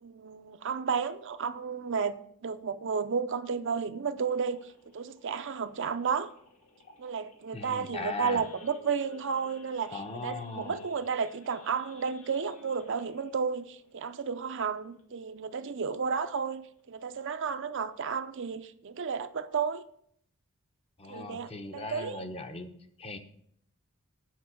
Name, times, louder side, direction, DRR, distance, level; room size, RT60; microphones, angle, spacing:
voice 1, 0.0-2.2 2.4-4.6 4.9-6.3 7.0-19.8 21.1-22.2, right 6 dB, 55° right, 0.5 m, -32 dB
Idling / Accelerating revving vroom / Sawing, 4.2-15.3 15.6-15.9 16.1-16.2 16.7-16.9 17.4-17.5 17.7-18.1, left 2 dB, 85° left, 1.8 m, -56 dB
voice 2, 7.5-8.5 9.9-10.9 21.0-22.7 23.0-23.2, left 3 dB, 25° left, 0.8 m, -39 dB
9.3 x 5.2 x 7.7 m
head